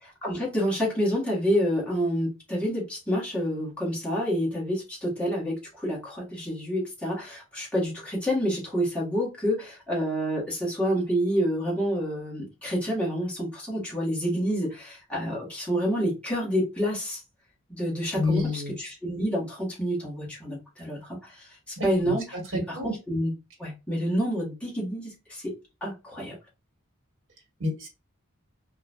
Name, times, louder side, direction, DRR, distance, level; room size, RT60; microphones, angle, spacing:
voice 1, 0.0-17.2 17.7-23.3 23.6-25.5 25.8-26.3, equal, 5° left, 1.4 m, -28 dB
voice 2, 18.1-18.8 21.8-22.1 22.7-22.9 27.6-27.9, left 3 dB, 60° right, 1.5 m, -28 dB
3.8 x 2.4 x 2.4 m
head